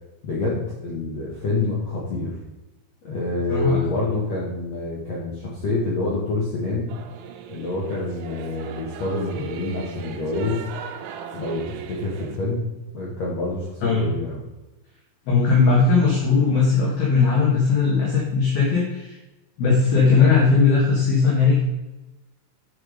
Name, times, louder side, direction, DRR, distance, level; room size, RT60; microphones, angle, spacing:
voice 1, 0.2-2.4 3.0-6.9 7.5-10.6 11.3-12.7 12.9-14.4, left 2 dB, 75° left, -5 dB, 1.5 m, -27 dB
voice 2, 3.5-3.8 13.8-14.1 15.3-19.2 19.6-21.6, left 4 dB, 60° left, -4 dB, 3.0 m, -18 dB
Singing / Musical instrument, 6.9-12.4, right 8 dB, 85° right, 3.3 m, -38 dB
10.5 x 6.0 x 5.0 m, 1.0 s
omnidirectional pair, 5.7 m